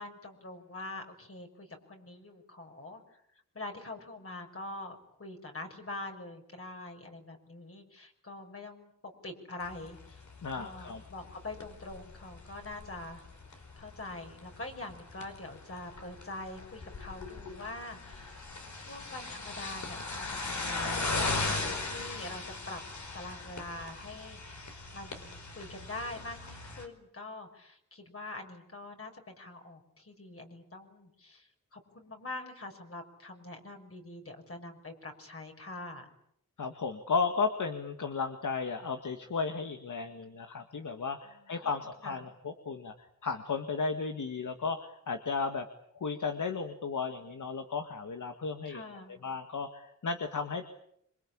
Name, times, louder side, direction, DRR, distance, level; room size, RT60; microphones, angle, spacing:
voice 1, 0.0-3.2 3.5-10.2 10.5-13.2 13.7-18.4 18.8-22.8 23.1-36.1 41.2-41.6 42.0-42.2 48.7-49.2, left 2 dB, 50° left, 3 dB, 6.0 m, -44 dB
sound 1, 9.6-26.9, left 3 dB, 70° left, 4.9 m, -39 dB
voice 2, 10.4-11.0 36.6-45.7 45.9-48.8 49.2-50.7, left 4 dB, 90° left, 6 dB, 2.0 m, -34 dB
27.0 x 25.0 x 8.8 m, 0.72 s
wide cardioid pair, 100°, 30 cm